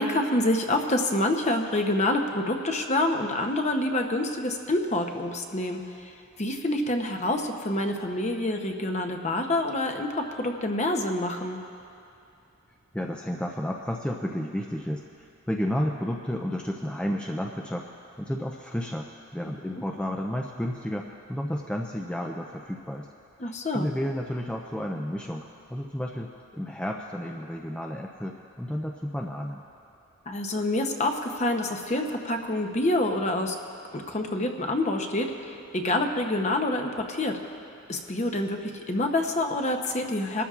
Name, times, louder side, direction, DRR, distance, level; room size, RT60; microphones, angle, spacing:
voice 1, 0.0-6.1 6.4-11.6 23.4-23.9 30.3-33.6 33.9-37.4 37.9-40.4, left 1 dB, 30° left, 4 dB, 0.8 m, -27 dB
voice 2, 12.9-17.9 18.2-23.1 23.4-29.6, equal, 5° left, 1 dB, 0.4 m, -32 dB
24.0 x 13.0 x 2.4 m, 2.6 s
head